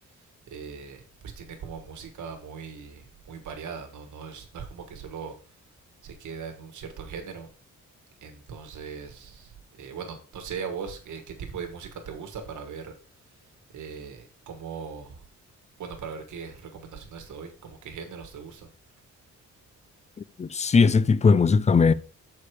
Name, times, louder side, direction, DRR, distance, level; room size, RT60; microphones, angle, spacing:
voice 1, 0.0-5.7 6.0-7.5 8.2-15.2 15.8-18.7, right 6 dB, 75° right, 1.5 m, -40 dB
voice 2, 20.4-21.9, left 5 dB, 25° left, 0.4 m, -19 dB
6.9 x 4.8 x 4.8 m
cardioid pair, 95°, 30 cm